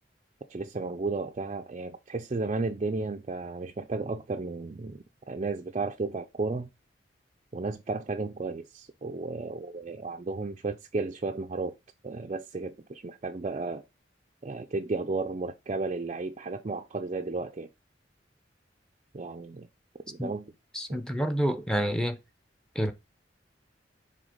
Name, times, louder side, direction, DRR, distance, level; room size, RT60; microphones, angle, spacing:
voice 1, 0.5-6.7 7.5-11.7 12.0-13.8 14.4-17.7 19.1-19.7 20.1-20.5 20.9-21.0, right 3 dB, 35° right, 0.5 m, -33 dB
voice 2, 20.7-22.2 22.7-22.9, equal, 5° left, 0.8 m, -28 dB
6.3 x 3.8 x 5.1 m
head